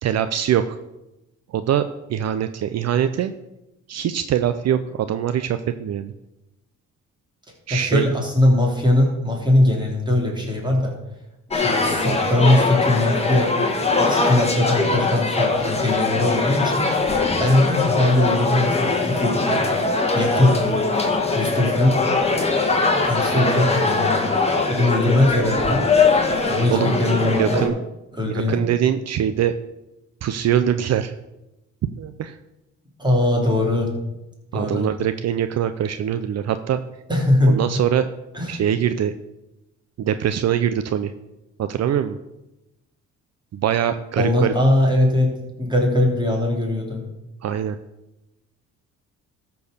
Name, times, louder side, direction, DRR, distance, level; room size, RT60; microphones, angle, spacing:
voice 1, 0.0-0.8 1.5-3.3 3.9-6.1 7.7-8.1 26.7-26.9 27.4-27.7 28.3-29.5 30.2-31.1 32.0-32.4 34.5-36.8 37.5-38.1 38.5-39.1 40.0-41.1 41.6-42.2 43.5-44.5 47.4-47.8, right 10 dB, 60° right, 10 dB, 0.6 m, -23 dB
voice 2, 7.7-10.9 11.5-13.5 14.0-16.9 17.4-19.6 20.1-20.6 21.3-22.0 23.0-24.2 24.7-25.9 26.5-27.6 28.1-28.6 33.0-33.9 34.5-34.9 37.1-37.6 38.3-38.6 44.2-45.3 45.6-47.0, left 1 dB, 15° right, -1 dB, 3.2 m, -20 dB
sound 1, 11.5-27.7, left 3 dB, 20° left, 1.8 m, -21 dB
13.0 x 4.6 x 6.6 m, 0.95 s
cardioid pair, 90°, 30 cm